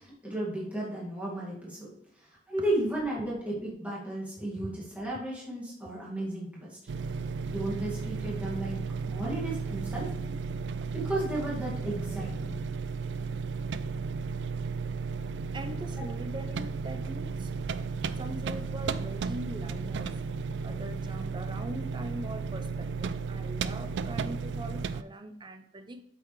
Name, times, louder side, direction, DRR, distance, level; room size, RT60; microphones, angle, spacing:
voice 1, 0.2-1.9 2.2-6.8 7.4-8.8 9.1-10.4 10.9-12.6, right 1 dB, 10° right, -7 dB, 2.1 m, -34 dB
sound 1, 6.9-25.0, right 5 dB, 80° right, 0.4 m, -34 dB
voice 2, 15.5-17.5 18.2-20.2 20.6-26.0, right 1 dB, 25° right, 8 dB, 0.6 m, -42 dB
8.3 x 6.9 x 3.2 m, 0.74 s
head